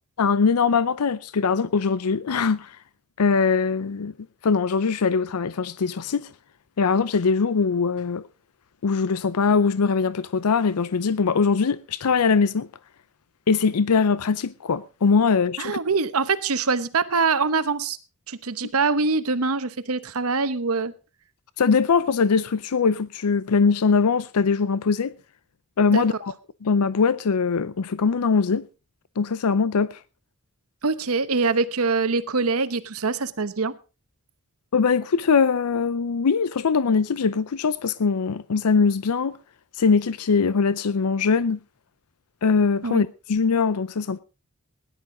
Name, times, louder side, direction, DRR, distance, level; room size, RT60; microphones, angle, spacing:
voice 1, 0.2-2.8 3.2-4.1 4.4-6.3 6.8-8.2 8.8-12.7 13.5-15.8 21.6-25.1 25.8-26.3 26.6-28.7 29.2-30.0 34.7-39.3 39.8-41.6 42.4-44.2, left 5 dB, 85° left, 0.5 m, -21 dB
voice 2, 15.6-18.0 18.3-20.9 25.9-26.0 30.8-33.8 42.8-43.0, right 4 dB, 75° right, 1.0 m, -24 dB
17.5 x 11.0 x 3.8 m
head